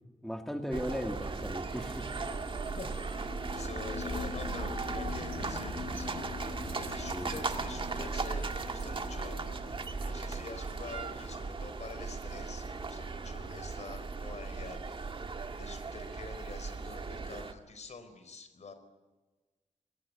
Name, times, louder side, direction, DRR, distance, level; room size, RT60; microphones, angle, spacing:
voice 1, 0.2-2.1 7.1-7.4, equal, 5° left, 4 dB, 1.9 m, -37 dB
sound 1, 0.7-17.5, right 4 dB, 40° right, 1.9 m, -37 dB
voice 2, 2.6-3.0 3.5-6.3 6.7-9.4 10.0-14.8 15.6-18.7, left 3 dB, 65° left, 10 dB, 4.4 m, -46 dB
sound 2, 3.1-14.3, left 4 dB, 80° left, 5.6 m, -44 dB
28.0 x 21.5 x 9.6 m, 1.2 s
wide cardioid pair, 175°, 13 cm